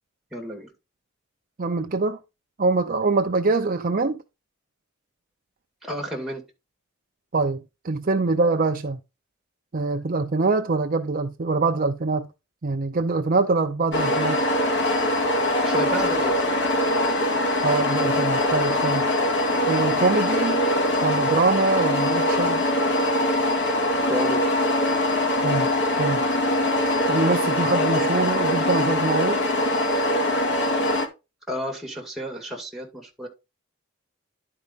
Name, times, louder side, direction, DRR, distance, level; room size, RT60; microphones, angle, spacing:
voice 1, 0.3-0.7 5.8-6.4 15.6-16.6 24.0-24.5 31.5-33.3, equal, ahead, 2.0 m, -31 dB
voice 2, 1.6-2.2 2.6-4.2 7.3-9.0 9.7-12.3 12.6-14.4 17.6-19.1 19.7-20.6 21.0-22.6 25.4-25.7 26.0-26.2 27.1-29.4, right 3 dB, 40° right, 0.5 m, -24 dB
sound 1, 13.9-31.1, left 1 dB, 55° left, 1.6 m, -22 dB
10.5 x 4.8 x 3.9 m
head